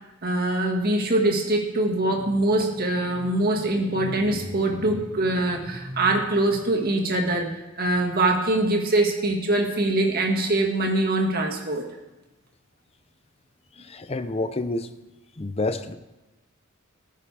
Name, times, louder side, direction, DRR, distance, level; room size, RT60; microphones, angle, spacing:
voice 1, 0.2-11.8, right 2 dB, 45° right, 1.8 m, -23 dB
voice 2, 13.8-14.9 15.4-15.9, left 2 dB, 30° left, 0.6 m, -28 dB
14.5 x 14.0 x 3.4 m
head